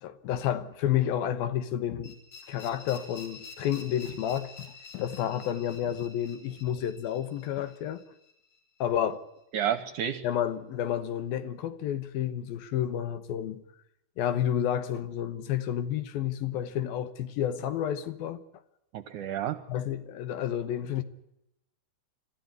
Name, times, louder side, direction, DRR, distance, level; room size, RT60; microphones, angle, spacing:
voice 1, 0.0-2.2 2.5-4.7 4.9-8.0 8.8-9.2 10.2-13.6 14.2-18.4 19.7-21.0, left 10 dB, 75° left, 2.9 m, -30 dB
sound 1, 2.0-8.8, left 4 dB, 50° left, 5.6 m, -49 dB
voice 2, 9.5-10.2 18.9-19.6, right 9 dB, 65° right, 2.1 m, -30 dB
26.0 x 14.5 x 9.6 m
omnidirectional pair, 4.5 m